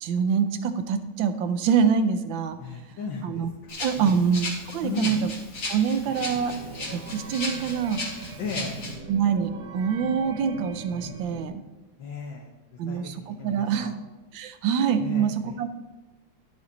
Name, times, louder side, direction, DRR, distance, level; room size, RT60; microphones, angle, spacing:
voice 1, 0.0-2.6 3.2-3.5 3.8-4.5 4.7-5.3 5.7-6.6 6.9-8.2 9.1-11.5 12.8-13.9 14.3-15.7, right 7 dB, 85° right, 9 dB, 1.5 m, -25 dB
voice 2, 2.6-3.4 4.0-4.2 4.8-5.2 8.4-8.7 12.0-12.5 12.9-14.0 15.0-15.5, left 4 dB, 85° left, -2 dB, 1.9 m, -35 dB
Rattle (instrument), 3.7-8.9, left 2 dB, 45° left, 2.2 m, -36 dB
sound 1, 6.0-11.5, right 2 dB, 60° right, 1.4 m, -40 dB
11.5 x 6.3 x 4.0 m, 1.2 s
omnidirectional pair, 2.1 m